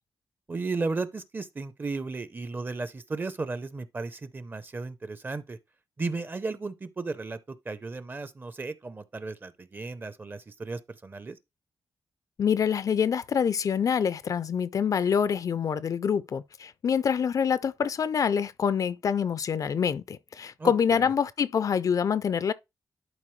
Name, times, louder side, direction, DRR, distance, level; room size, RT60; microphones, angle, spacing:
voice 1, 0.5-5.6 6.0-11.4 20.6-21.0, right 3 dB, 30° right, 0.7 m, -35 dB
voice 2, 12.4-22.5, left 7 dB, 55° left, 0.4 m, -26 dB
11.0 x 4.2 x 3.1 m
wide cardioid pair, 105°, 7 cm